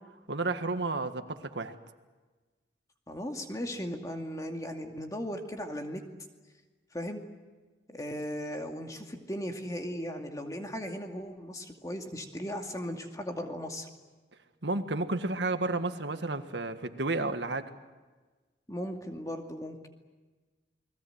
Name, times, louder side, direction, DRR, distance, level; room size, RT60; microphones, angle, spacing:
voice 1, 0.3-1.7 14.6-17.7, right 2 dB, 80° right, 8 dB, 1.7 m, -31 dB
voice 2, 3.1-6.0 6.9-7.2 7.9-13.9 18.7-19.9, equal, 20° left, 3 dB, 2.4 m, -37 dB
29.5 x 21.5 x 8.1 m, 1.3 s
head